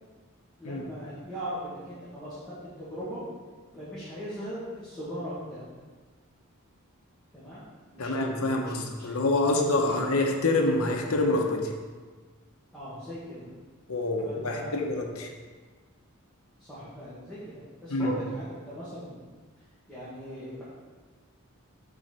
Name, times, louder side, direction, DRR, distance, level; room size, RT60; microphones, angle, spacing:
voice 1, 0.6-2.4 2.8-3.2 3.7-5.6 7.3-8.7 9.0-9.2 9.5-10.0 12.7-13.5 14.2-14.8 16.6-19.2 19.9-20.7, equal, 5° left, -13 dB, 1.8 m, -39 dB
voice 2, 8.0-11.7 13.9-15.3 17.9-18.1, left 2 dB, 75° left, 2 dB, 1.0 m, -26 dB
6.1 x 4.2 x 5.4 m, 1.4 s
head